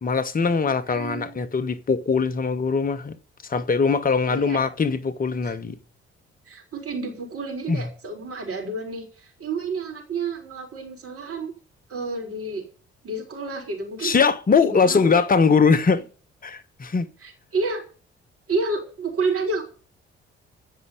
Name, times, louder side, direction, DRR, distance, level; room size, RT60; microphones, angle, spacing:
voice 1, 0.0-3.1 3.4-5.8 7.7-7.9 14.0-16.0 16.4-17.1, left 5 dB, 25° left, 1.1 m, -21 dB
voice 2, 0.9-1.5 4.3-4.6 5.4-5.5 6.5-11.5 11.9-12.6 13.0-14.2 14.6-15.2 17.2-17.8 18.5-19.6, right 3 dB, 45° right, 4.3 m, -30 dB
16.0 x 5.5 x 9.3 m
figure-of-eight pair, 40°, 32 cm